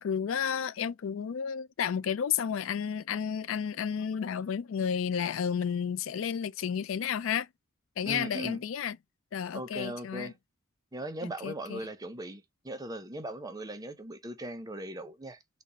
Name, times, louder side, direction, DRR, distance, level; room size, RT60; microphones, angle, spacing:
voice 1, 0.0-7.5 8.0-9.0 9.3-10.3 11.4-11.8, left 7 dB, 80° left, 0.4 m, -32 dB
voice 2, 8.0-8.6 9.5-10.3 10.9-15.4, right 1 dB, 20° right, 0.7 m, -39 dB
4.0 x 2.4 x 3.0 m
head